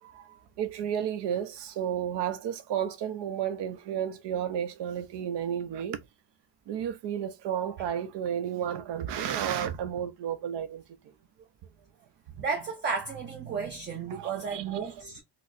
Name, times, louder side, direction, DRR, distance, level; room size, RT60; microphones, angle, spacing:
voice 1, 0.0-6.0 6.7-10.8 14.1-15.1, right 9 dB, 75° right, 0.7 m, -32 dB
voice 2, 12.4-15.2, right 5 dB, 25° right, 0.5 m, -33 dB
4.3 x 2.1 x 2.5 m
cardioid pair, 175°, 42 cm